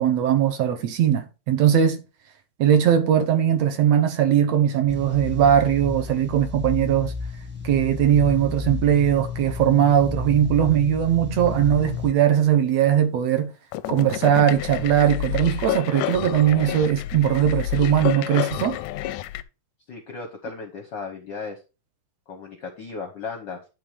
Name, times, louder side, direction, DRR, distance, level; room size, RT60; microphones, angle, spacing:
voice 1, 0.0-2.0 2.6-7.1 7.6-13.5 13.9-18.8, right 9 dB, 65° right, 2.0 m, -20 dB
sound 1, 4.9-12.1, left 4 dB, 10° right, 0.6 m, -32 dB
sound 2, 11.5-12.1 13.7-19.4, left 14 dB, 85° left, 2.0 m, -29 dB
voice 2, 19.9-21.6 22.3-23.6, left 4 dB, 65° left, 1.1 m, -35 dB
10.5 x 4.0 x 4.9 m
omnidirectional pair, 3.4 m